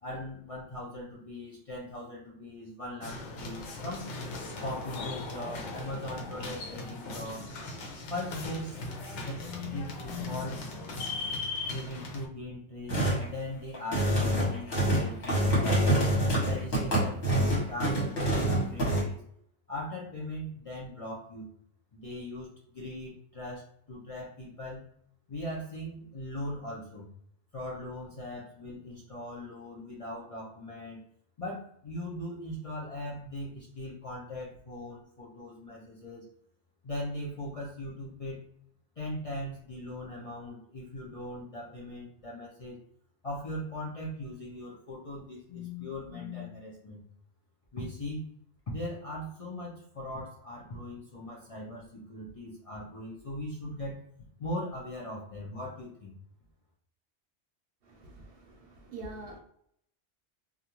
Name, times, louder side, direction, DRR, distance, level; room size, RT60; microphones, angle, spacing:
voice 1, 0.0-4.1 4.6-7.5 8.1-10.6 11.7-16.0 16.5-18.2 18.5-19.2 19.7-21.5 21.9-24.8 25.3-27.1 27.5-31.0 31.4-36.2 36.8-38.4 39.0-42.8 43.2-47.0 47.7-48.3 48.7-54.0 54.4-56.1, left 1 dB, 45° left, -5 dB, 0.5 m, -39 dB
sound 1, 3.0-12.2, left 2 dB, 90° left, 0.9 m, -38 dB
sound 2, 12.9-13.3 13.7-19.0, right 1 dB, 65° left, 1.3 m, -26 dB
voice 2, 57.8-59.4, right 2 dB, 65° right, 2 dB, 0.7 m, -45 dB
2.4 x 2.3 x 2.9 m, 0.69 s
omnidirectional pair, 1.2 m